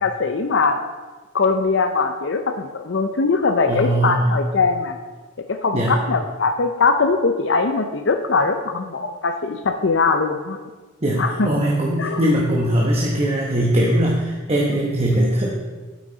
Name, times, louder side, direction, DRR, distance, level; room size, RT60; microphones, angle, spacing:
voice 1, 0.0-0.8 1.3-5.0 5.5-10.6 11.2-11.5 12.0-12.3, left 4 dB, 60° left, 7 dB, 0.6 m, -21 dB
voice 2, 3.7-4.4 5.7-6.0 11.0-15.5, right 1 dB, 30° right, -2 dB, 1.0 m, -20 dB
9.1 x 8.3 x 4.0 m, 1.3 s
head